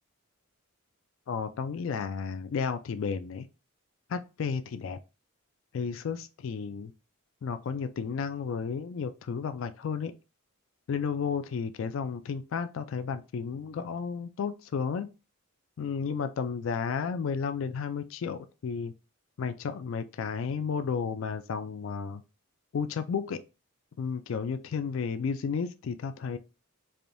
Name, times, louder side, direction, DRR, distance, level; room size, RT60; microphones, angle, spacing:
voice 1, 1.3-3.5 4.1-5.0 5.7-6.9 7.4-10.1 10.9-15.1 15.8-18.9 19.4-22.2 22.7-23.4 24.0-26.4, left 6 dB, 60° left, 0.3 m, -32 dB
3.4 x 2.6 x 2.6 m
head